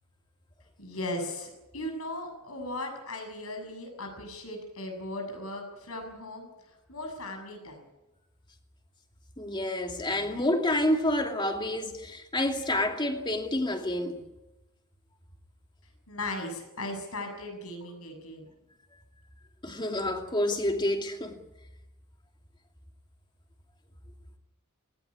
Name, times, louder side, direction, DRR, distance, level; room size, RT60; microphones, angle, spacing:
voice 1, 0.8-7.8 16.1-18.5, left 1 dB, 85° left, 7.4 m, -37 dB
voice 2, 9.4-14.2 19.6-21.4, left 1 dB, 20° left, 2.5 m, -28 dB
19.0 x 17.5 x 10.0 m
head